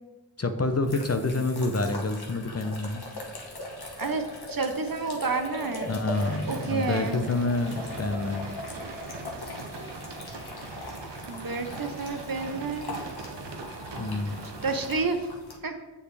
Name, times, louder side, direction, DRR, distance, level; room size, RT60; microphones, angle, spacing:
voice 1, 0.4-3.0 5.9-8.5 14.0-14.4, left 2 dB, 40° left, 7 dB, 0.7 m, -28 dB
sound 1, 0.6-15.6, left 1 dB, 65° left, 1.3 m, -40 dB
voice 2, 4.0-5.9 6.5-7.2 11.3-13.0 14.6-15.3 15.6-15.7, right 4 dB, 55° right, 6 dB, 0.9 m, -30 dB
sound 2, 6.1-15.0, right 3 dB, 85° right, 0.8 m, -41 dB
7.1 x 6.9 x 3.4 m, 1.2 s
wide cardioid pair, 40°, 41 cm